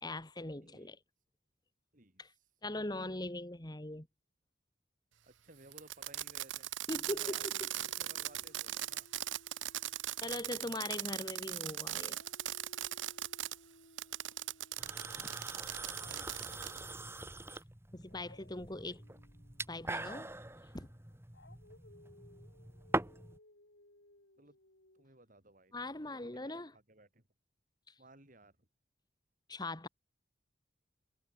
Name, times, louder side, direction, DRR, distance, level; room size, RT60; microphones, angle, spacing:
voice 1, 0.0-1.0 2.2-2.3 2.6-4.1 6.9-7.7 10.2-12.2 15.2-15.3 17.9-19.0 19.7-20.3 20.7-20.9 25.7-26.7 27.9-28.0 29.5-29.9, left 2 dB, 20° left, 2.0 m, -41 dB
voice 2, 0.6-1.0 1.9-2.2 5.2-6.7 7.1-9.1 16.0-16.3 24.4-24.6 24.9-27.2 28.0-28.7, right 2 dB, 45° right, 5.5 m, -59 dB
Fireworks, 5.7-13.6 14.0-16.8, right 13 dB, 90° right, 1.1 m, -39 dB
Dog, 7.4-11.6 12.0-17.0 18.1-25.0, left 1 dB, 70° left, 4.9 m, -63 dB
sound 1, 14.8-23.4, right 2 dB, 15° right, 1.5 m, -43 dB
head